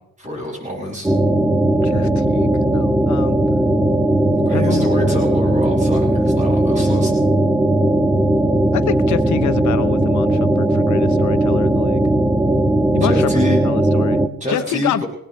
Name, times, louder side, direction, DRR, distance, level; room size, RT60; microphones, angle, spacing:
voice 1, 0.2-1.1 4.4-7.1 12.9-13.7 14.4-15.1, left 1 dB, 25° right, 0 dB, 6.8 m, -26 dB
sound 1, 1.0-14.3, right 1 dB, 10° right, 1.3 m, -17 dB
voice 2, 1.8-3.4 4.5-4.9 5.3-5.4 8.7-12.0 12.9-13.3 13.6-14.2 14.5-15.0, left 12 dB, 70° left, 10 dB, 0.9 m, -27 dB
19.5 x 19.0 x 3.2 m, 0.76 s
cardioid pair, 90°, 30 cm